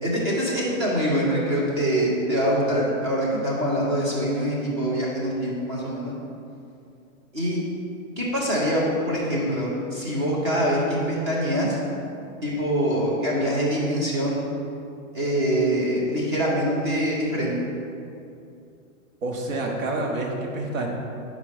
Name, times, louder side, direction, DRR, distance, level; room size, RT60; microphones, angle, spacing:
voice 1, 0.0-6.1 7.3-7.6 8.2-11.8 12.4-14.4 15.1-17.5, equal, 20° right, -4 dB, 0.7 m, -24 dB
voice 2, 19.2-20.9, right 2 dB, 70° right, 0 dB, 1.2 m, -28 dB
5.1 x 4.3 x 5.0 m, 2.5 s
hypercardioid pair, 180°, 41 cm